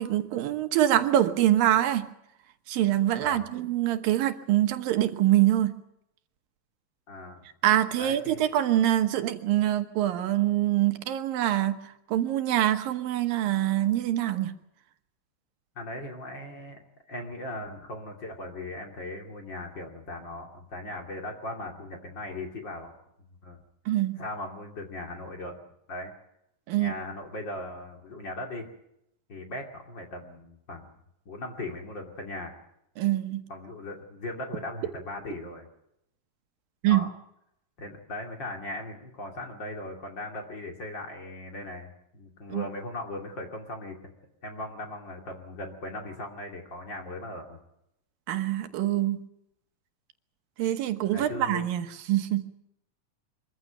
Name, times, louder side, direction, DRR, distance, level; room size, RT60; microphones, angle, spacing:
voice 1, 0.0-2.1 2.7-5.7 7.6-14.6 23.9-24.2 26.7-26.9 33.0-33.4 36.8-37.0 42.5-42.7 48.3-49.2 50.6-52.4, right 13 dB, 85° right, 8 dB, 2.9 m, -25 dB
voice 2, 7.1-7.5 8.0-8.4 15.7-22.9 23.4-23.6 24.2-25.6 25.9-26.1 26.7-28.7 29.3-30.9 31.3-32.6 33.5-35.7 36.9-37.1 37.8-44.0 44.4-47.6 51.1-51.7, left 1 dB, 35° left, 2 dB, 3.0 m, -38 dB
24.0 x 14.5 x 9.2 m, 0.80 s
omnidirectional pair, 4.0 m